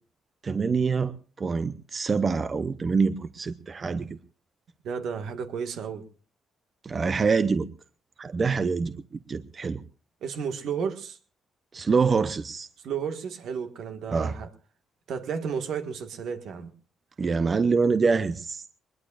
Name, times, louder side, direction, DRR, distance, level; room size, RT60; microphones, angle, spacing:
voice 1, 0.4-1.1 1.4-4.1 6.8-7.7 8.2-8.9 9.3-9.8 11.7-12.7 14.1-14.3 17.2-18.6, right 5 dB, 35° right, 0.7 m, -25 dB
voice 2, 4.8-6.0 10.2-11.2 12.8-14.5 15.1-16.7, right 6 dB, 75° right, 1.6 m, -32 dB
21.0 x 21.0 x 2.5 m
cardioid pair, 90°, 0 cm